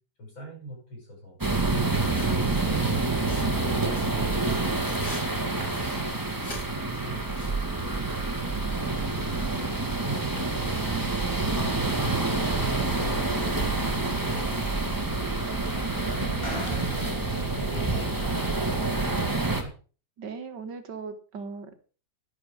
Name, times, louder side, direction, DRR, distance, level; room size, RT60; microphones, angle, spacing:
voice 1, 0.2-1.4 6.0-9.1 9.6-11.9 12.5-14.9 15.7-16.4 16.8-17.3 17.6-19.7, equal, 75° left, -1 dB, 8.2 m, -44 dB
sound 1, 1.4-19.6, right 3 dB, 10° right, 1.6 m, -27 dB
sound 2, 2.1-2.8 3.3-5.2 5.6-6.7 7.1-7.6 8.7-8.8, left 1 dB, 55° left, 5.6 m, -44 dB
sound 3, 12.7-18.4, right 2 dB, 15° left, 2.7 m, -36 dB
voice 2, 20.2-21.8, right 5 dB, 60° right, 8 dB, 1.9 m, -38 dB
11.0 x 10.5 x 5.2 m, 0.37 s
omnidirectional pair, 2.2 m